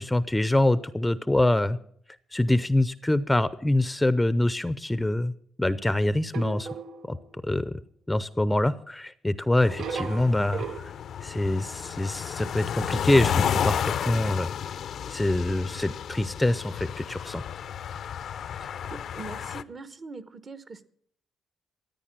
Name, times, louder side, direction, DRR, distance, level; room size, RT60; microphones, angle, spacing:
voice 1, 0.0-1.8 2.3-5.3 5.6-6.7 7.1-7.7 8.1-10.9 11.2-14.5 15.1-17.4, left 1 dB, 10° left, 15 dB, 0.6 m, -25 dB
sound 1, 6.3-7.4 9.7-10.8, right 6 dB, 70° right, 0.8 m, -36 dB
sound 2, 9.6-19.6, left 8 dB, 65° left, 0.6 m, -32 dB
voice 2, 18.6-20.8, right 3 dB, 40° right, 13 dB, 1.1 m, -42 dB
14.5 x 9.3 x 7.5 m, 0.64 s
cardioid pair, 90°, 0 cm